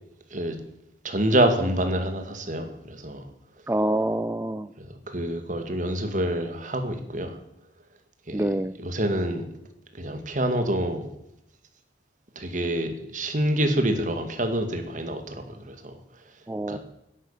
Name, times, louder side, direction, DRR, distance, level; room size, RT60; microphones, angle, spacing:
voice 1, 1.0-3.2 4.8-7.4 8.3-8.5 8.8-9.5 10.0-11.0 12.4-15.9 16.7-16.8, right 1 dB, 45° right, 7 dB, 2.0 m, -27 dB
voice 2, 3.7-4.7 8.3-8.8 16.5-16.8, right 1 dB, 15° right, 13 dB, 0.4 m, -26 dB
11.0 x 11.0 x 8.7 m, 0.84 s
head